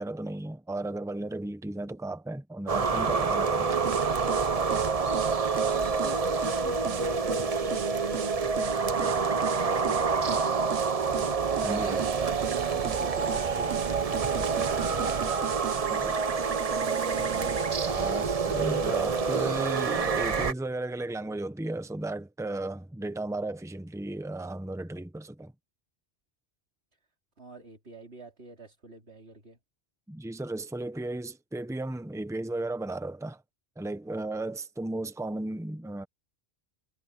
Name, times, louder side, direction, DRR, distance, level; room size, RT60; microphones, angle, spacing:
voice 1, 0.0-3.8 11.6-12.1 15.9-16.1 17.8-25.5 30.1-33.4 33.8-36.1, right 2 dB, 5° right, 1.0 m, -34 dB
sound 1, 2.7-20.5, right 5 dB, 40° right, 0.8 m, -27 dB
sound 2, 3.8-17.7, right 9 dB, 75° right, 1.0 m, -38 dB
voice 2, 5.3-11.4 12.2-17.4 27.4-29.6, right 2 dB, 90° right, 3.8 m, -46 dB
omnidirectional pair, 1.1 m